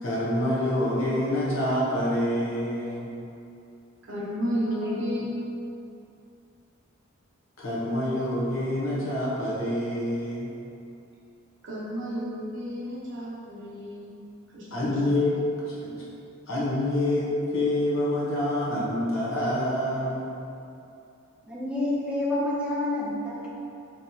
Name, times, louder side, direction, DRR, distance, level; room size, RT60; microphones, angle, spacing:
voice 1, 0.0-3.1 4.8-4.9 7.6-10.5 14.7-15.4 15.7-16.0 16.5-20.3, left 1 dB, 75° left, -7 dB, 1.0 m, -27 dB
voice 2, 4.1-5.2 11.6-14.1 14.5-14.6, equal, 60° right, -8 dB, 0.9 m, -31 dB
voice 3, 21.4-23.5, left 1 dB, 5° right, -7 dB, 0.5 m, -28 dB
4.2 x 3.1 x 2.8 m, 2.7 s
head